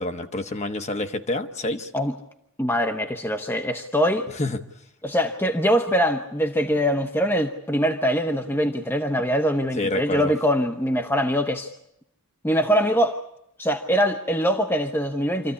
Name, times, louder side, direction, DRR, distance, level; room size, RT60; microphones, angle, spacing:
voice 1, 0.0-1.9 4.3-4.6 9.8-10.3, left 2 dB, 30° left, 7 dB, 1.1 m, -28 dB
voice 2, 2.6-4.3 5.0-11.7 12.4-13.2 13.6-15.5, equal, 10° left, 5 dB, 0.9 m, -23 dB
27.0 x 14.0 x 9.7 m, 0.79 s
head